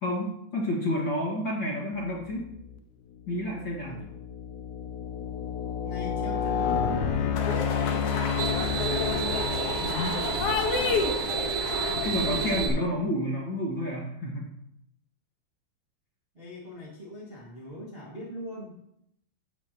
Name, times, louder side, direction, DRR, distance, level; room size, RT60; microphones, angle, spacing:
voice 1, 0.0-2.5 3.3-4.0 9.8-10.2 11.9-14.5, left 1 dB, 40° left, -4 dB, 1.8 m, -30 dB
sound 1, 2.4-2.8 3.4-10.2, left 7 dB, 80° left, 1.7 m, -30 dB
voice 2, 5.8-9.4 16.3-18.8, left 1 dB, 25° right, -5 dB, 1.4 m, -41 dB
sound 2, 7.3-12.6, left 5 dB, 65° left, 1.6 m, -30 dB
sound 3, 7.9-12.7, right 6 dB, 85° right, 3.9 m, -31 dB
14.5 x 8.2 x 3.0 m, 0.73 s
omnidirectional pair, 4.2 m